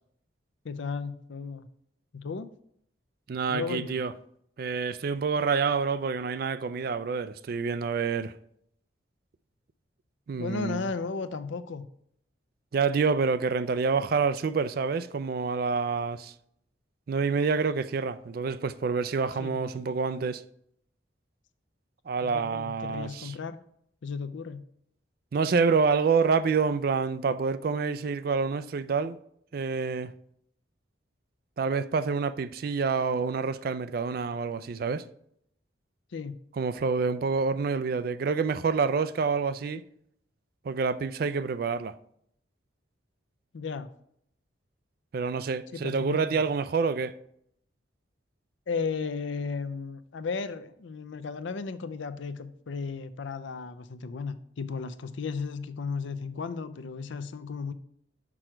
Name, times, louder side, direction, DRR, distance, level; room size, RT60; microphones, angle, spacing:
voice 1, 0.6-1.7 2.1-2.5 3.5-4.0 10.4-11.9 19.4-19.6 22.2-23.6 24.0-24.6 36.1-36.4 43.5-43.9 45.7-46.4 48.7-57.7, left 5 dB, 75° left, 0.5 m, -35 dB
voice 2, 3.3-4.1 4.6-8.3 10.3-10.9 12.7-16.3 17.1-20.4 22.1-23.4 25.3-29.2 29.5-30.1 31.6-35.0 36.5-39.8 40.6-41.9 45.1-47.1, right 5 dB, 50° right, 0.3 m, -27 dB
6.1 x 4.9 x 4.5 m
head